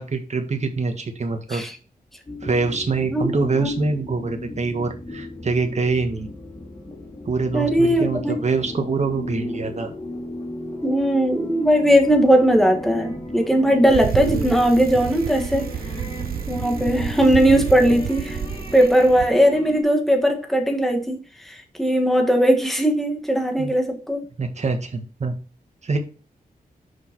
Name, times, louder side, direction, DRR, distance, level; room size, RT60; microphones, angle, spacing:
voice 1, 0.0-1.6 2.4-6.3 7.2-9.9 23.6-23.7 24.4-25.3 25.8-26.0, right 4 dB, 45° right, 1.6 m, -24 dB
sound 1, 2.3-19.8, left 1 dB, 35° left, 2.4 m, -35 dB
voice 2, 7.5-8.4 10.8-15.7 16.5-18.4 18.7-24.3, equal, ahead, 1.9 m, -19 dB
Bicycle, 13.9-19.3, right 8 dB, 75° right, 0.6 m, -30 dB
6.5 x 5.2 x 4.7 m
wide cardioid pair, 85°, 16 cm